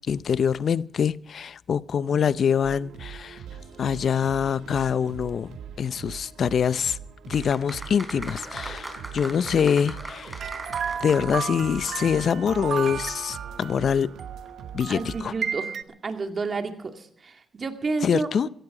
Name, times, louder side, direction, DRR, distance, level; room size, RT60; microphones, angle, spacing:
voice 1, 0.1-3.4 3.8-7.0 7.3-10.4 11.0-14.1 14.7-15.3 18.0-18.5, left 7 dB, 60° left, 0.5 m, -25 dB
sound 1, 2.6-15.2, right 7 dB, 80° right, 1.9 m, -42 dB
sound 2, 7.3-11.8 12.1-12.2, right 1 dB, 15° right, 4.4 m, -39 dB
sound 3, 10.4-15.8, right 7 dB, 60° right, 1.0 m, -33 dB
voice 2, 14.9-15.7 16.0-18.3, right 4 dB, 40° right, 2.2 m, -30 dB
17.5 x 15.0 x 5.0 m
cardioid pair, 75°, 0 cm